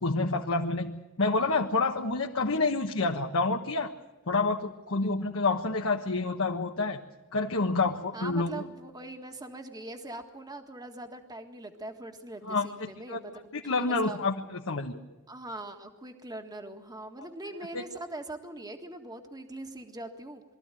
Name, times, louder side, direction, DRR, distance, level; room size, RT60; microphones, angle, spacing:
voice 1, 0.0-0.9 1.2-3.9 4.3-7.0 7.3-8.6 12.4-12.7 13.1-13.2 13.5-15.0 17.7-17.8, left 3 dB, 65° left, 1 dB, 1.3 m, -28 dB
voice 2, 8.1-13.3 13.6-14.2 15.3-20.4, right 1 dB, 20° right, 5 dB, 1.7 m, -42 dB
23.0 x 14.5 x 9.1 m, 1.2 s
head